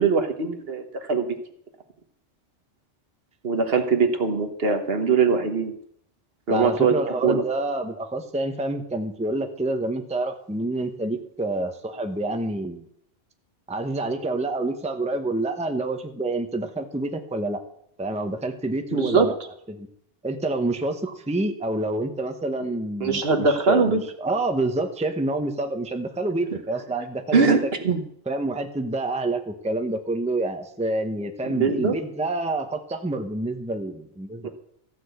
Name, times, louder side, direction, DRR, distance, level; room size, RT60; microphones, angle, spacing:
voice 1, 0.0-1.3 3.4-5.7 6.5-6.9 7.2-7.4 18.9-19.3 23.0-24.0 27.3-28.0 31.5-32.0 34.4-34.5, right 5 dB, 55° right, 6 dB, 1.4 m, -21 dB
voice 2, 6.5-12.9 13.7-17.6 18.0-19.3 19.7-19.9 20.2-27.6 28.3-34.5, right 2 dB, 5° right, 6 dB, 0.8 m, -27 dB
14.5 x 6.1 x 8.1 m, 0.69 s
omnidirectional pair, 1.2 m